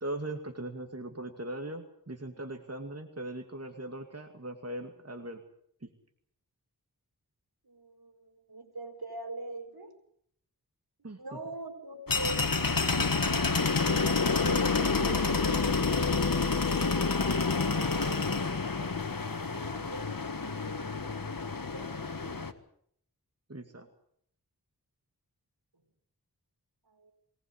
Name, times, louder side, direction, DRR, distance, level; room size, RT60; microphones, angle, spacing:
voice 1, 0.0-5.4 5.8-5.9 11.0-11.2 14.4-15.2 23.5-23.9, right 1 dB, 40° right, 5 dB, 2.4 m, -39 dB
voice 2, 7.6-9.9 11.2-12.5 16.8-19.0 19.5-22.5 26.9-27.1, right 2 dB, 75° right, 5 dB, 4.5 m, -43 dB
sound 1, 12.1-22.5, left 4 dB, 60° left, 1.6 m, -28 dB
22.5 x 19.0 x 8.1 m, 0.67 s
wide cardioid pair, 45°, 38 cm